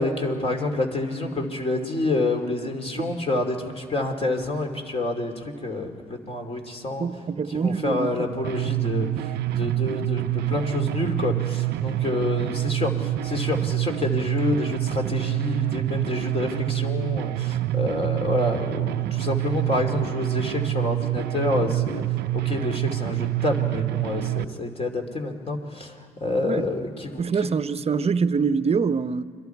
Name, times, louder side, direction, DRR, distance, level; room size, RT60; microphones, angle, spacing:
voice 1, 0.0-7.1 7.5-22.0 22.3-25.9 26.2-27.5, left 2 dB, 35° left, 3.0 m, -28 dB
voice 2, 7.0-8.3 26.4-26.7 27.2-29.2, right 5 dB, 35° right, 0.8 m, -24 dB
sound 1, 8.4-24.5, right 15 dB, 75° right, 0.6 m, -27 dB
29.5 x 23.0 x 4.7 m
supercardioid pair, 65°, 17 cm